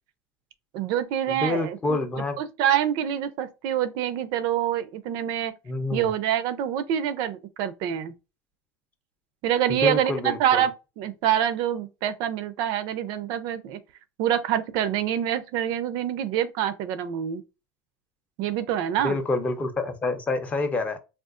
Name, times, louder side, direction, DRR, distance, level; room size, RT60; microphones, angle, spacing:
voice 1, 0.7-2.0 2.4-5.5 5.9-8.1 9.4-13.8 14.2-17.4 18.4-19.2, right 10 dB, 55° right, 0.4 m, -26 dB
voice 2, 1.3-2.4 5.7-6.1 9.7-10.7 19.0-21.0, left 2 dB, 15° left, 0.5 m, -27 dB
3.6 x 2.3 x 2.3 m
supercardioid pair, 140°, 8 cm